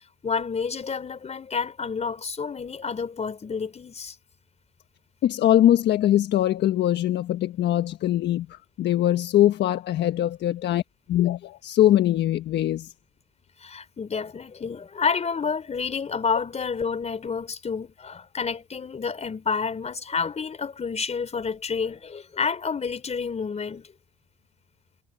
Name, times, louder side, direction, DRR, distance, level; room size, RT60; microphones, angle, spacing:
voice 1, 0.2-4.1 13.6-23.9, left 5 dB, 35° left, 4.7 m, -29 dB
voice 2, 5.2-10.8 11.1-12.9, left 12 dB, 60° left, 1.4 m, -22 dB
supercardioid pair, 75°, 20 cm